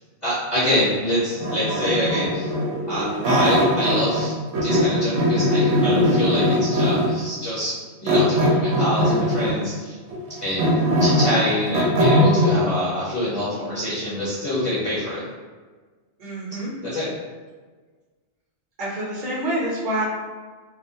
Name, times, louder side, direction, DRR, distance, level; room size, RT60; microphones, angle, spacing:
voice 1, 0.2-2.5 2.9-4.3 4.6-7.7 8.0-10.0 10.4-10.7 11.0-15.2 16.8-17.1, left 1 dB, 40° left, -11 dB, 0.8 m, -25 dB
sound 1, 1.4-4.3 4.5-7.2 8.1-9.6 10.1-12.6, equal, 80° right, 0.9 m, -20 dB
voice 2, 16.2-16.7 18.8-20.0, right 1 dB, 45° right, -6 dB, 0.8 m, -27 dB
2.3 x 2.1 x 2.6 m, 1.4 s
omnidirectional pair, 1.2 m